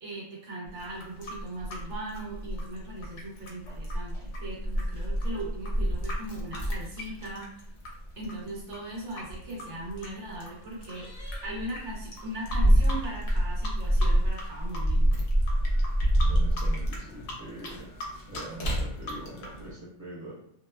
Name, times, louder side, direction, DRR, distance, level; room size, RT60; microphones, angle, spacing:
voice 1, 0.0-7.7 8.2-15.3, right 1 dB, 65° right, -3 dB, 1.1 m, -39 dB
Keys jangling, 0.7-19.7, equal, 70° left, 0.3 m, -29 dB
sound 1, 0.8-7.9 8.2-11.4 11.7-11.8 12.1-13.4 13.6-14.4 14.7-19.6, left 1 dB, 85° left, 1.1 m, -42 dB
voice 2, 16.3-17.9 18.3-20.3, right 1 dB, 20° right, -9 dB, 0.6 m, -43 dB
2.8 x 2.1 x 2.2 m, 0.72 s
omnidirectional pair, 1.3 m